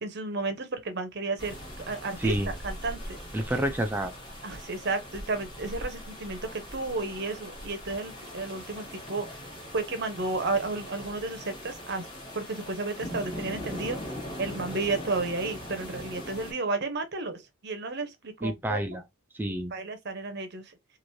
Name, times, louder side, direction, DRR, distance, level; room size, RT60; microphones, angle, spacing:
voice 1, 0.0-1.6 1.9-3.2 4.4-9.4 9.7-12.1 12.3-19.0 19.7-20.8, right 3 dB, 50° right, 0.7 m, -32 dB
sound 1, 1.4-16.5, equal, 20° left, 1.1 m, -40 dB
voice 2, 2.2-2.5 3.3-4.1 18.4-19.0 19.3-19.7, right 1 dB, 10° right, 0.3 m, -29 dB
3.1 x 2.6 x 2.6 m
head